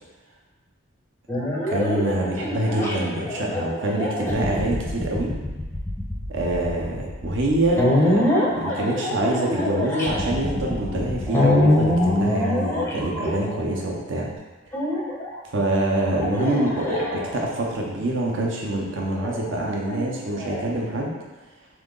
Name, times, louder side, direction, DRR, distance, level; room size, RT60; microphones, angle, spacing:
sound 1, 1.3-13.9 14.7-15.3 16.2-17.7 19.2-20.6, left 1 dB, 10° left, 0.5 m, -24 dB
voice 1, 1.7-5.3 6.3-14.3 15.5-21.1, right 1 dB, 60° right, -2 dB, 0.7 m, -25 dB
3.8 x 3.1 x 3.7 m, 1.2 s
head